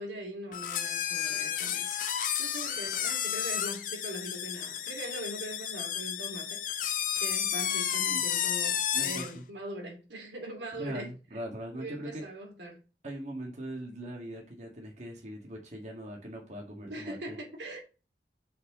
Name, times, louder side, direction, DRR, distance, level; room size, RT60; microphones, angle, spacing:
voice 1, 0.0-6.9 7.2-11.4 11.7-12.8 16.9-17.8, right 1 dB, 85° right, 2.7 m, -41 dB
sound 1, 0.5-9.3, left 9 dB, 50° left, 0.8 m, -32 dB
voice 2, 8.9-9.4 10.7-12.2 13.0-17.4, right 1 dB, 40° right, 2.0 m, -40 dB
5.6 x 4.8 x 5.2 m
head